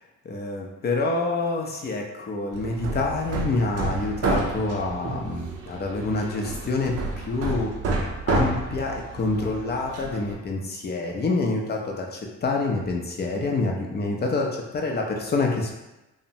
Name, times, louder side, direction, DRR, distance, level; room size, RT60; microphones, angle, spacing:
voice 1, 0.2-7.7 8.3-15.7, left 3 dB, 35° left, 0 dB, 0.5 m, -27 dB
Hammer, 2.5-10.4, right 3 dB, 55° right, 0.5 m, -30 dB
2.7 x 2.1 x 2.7 m, 0.99 s
cardioid pair, 90°, 30 cm